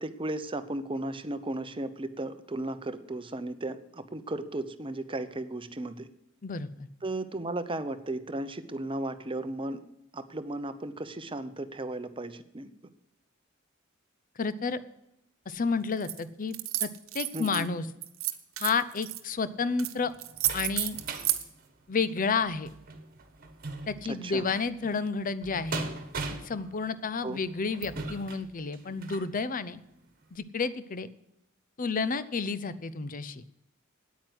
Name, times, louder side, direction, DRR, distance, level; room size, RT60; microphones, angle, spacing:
voice 1, 0.0-6.1 7.0-9.8 10.1-12.7 17.3-17.7 24.0-24.4 27.2-27.4, right 2 dB, 25° right, 11 dB, 0.8 m, -35 dB
voice 2, 6.4-6.9 14.4-14.8 15.5-16.9 17.1-17.9 18.6-20.1 20.5-21.0 21.9-22.7 23.9-25.9 26.4-29.8 30.3-31.1 31.8-33.4, left 4 dB, 40° left, 15 dB, 0.6 m, -31 dB
sound 1, 16.0-16.2 16.5-17.6 18.0-19.2 19.8-19.9 20.2-21.4, right 14 dB, 80° right, 1.0 m, -31 dB
sound 2, 19.5-29.3 29.9-30.0 30.4-30.5, right 3 dB, 45° right, 1.6 m, -41 dB
9.4 x 8.9 x 7.9 m, 0.83 s
head